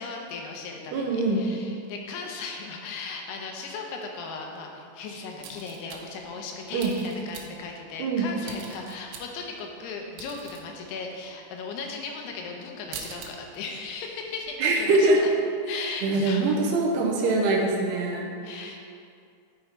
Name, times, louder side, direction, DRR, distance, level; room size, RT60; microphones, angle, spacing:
voice 1, 0.0-15.1 15.7-16.6 18.4-18.8, left 4 dB, 75° left, 1 dB, 2.6 m, -37 dB
voice 2, 0.9-1.4 6.7-7.0 8.0-8.3 14.6-15.2 16.0-18.3, right 2 dB, 75° right, -1 dB, 2.6 m, -23 dB
sound 1, 5.4-6.3 6.8-7.7 8.4-9.6 9.9-10.6 10.9-11.3 11.8-11.9 12.4-12.5 12.7-13.3 13.7-13.9 14.2-15.1, right 6 dB, 90° right, 3.3 m, -43 dB
12.5 x 5.6 x 4.4 m, 2.3 s
omnidirectional pair, 5.3 m